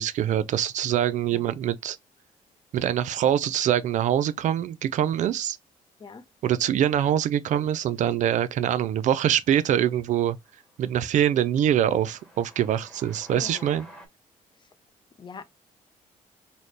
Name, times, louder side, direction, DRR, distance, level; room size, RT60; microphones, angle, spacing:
voice 1, 0.0-2.0 2.7-5.6 6.4-10.4 10.8-13.9, right 10 dB, 60° right, 0.4 m, -24 dB
Train, 8.5-8.9 9.2-14.1, equal, 5° left, 1.2 m, -52 dB
voice 2, 13.3-13.8 15.2-15.4, left 5 dB, 30° left, 0.6 m, -42 dB
4.1 x 2.1 x 3.1 m
cardioid pair, 120°, 14 cm